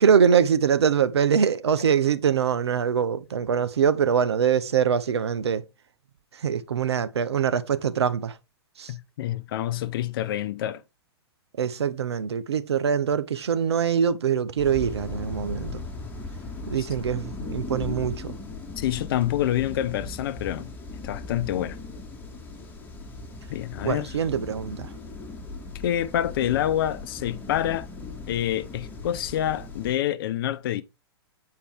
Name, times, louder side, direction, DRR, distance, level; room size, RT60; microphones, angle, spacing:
voice 1, 0.0-5.6 6.4-8.3 8.8-8.9 11.6-15.8 16.7-18.4 23.8-24.9, right 7 dB, 75° right, 0.7 m, -23 dB
voice 2, 8.9-10.8 16.8-16.9 18.8-20.7 21.0-21.8 23.5-24.2 25.8-27.9 28.3-30.8, left 12 dB, 55° left, 0.7 m, -27 dB
sound 1, 14.6-29.9, left 3 dB, 15° left, 2.1 m, -38 dB
8.4 x 4.6 x 3.5 m
hypercardioid pair, 110°, 14 cm